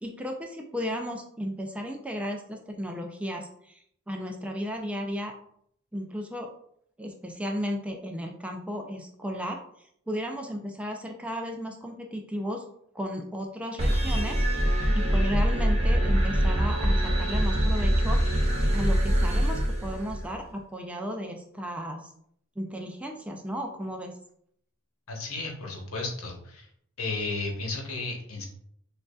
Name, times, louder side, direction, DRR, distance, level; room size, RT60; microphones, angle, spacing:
voice 1, 0.0-3.8 4.1-5.3 5.9-6.5 7.0-9.6 10.1-12.6 12.9-14.4 14.9-18.2 18.7-22.1 22.6-24.1, equal, 5° right, 2 dB, 0.4 m, -34 dB
sound 1, 13.8-20.4, equal, 30° right, 0.8 m, -24 dB
voice 2, 25.1-26.7 27.0-28.5, left 3 dB, 85° left, 0 dB, 1.1 m, -33 dB
6.4 x 2.5 x 2.3 m, 0.68 s
head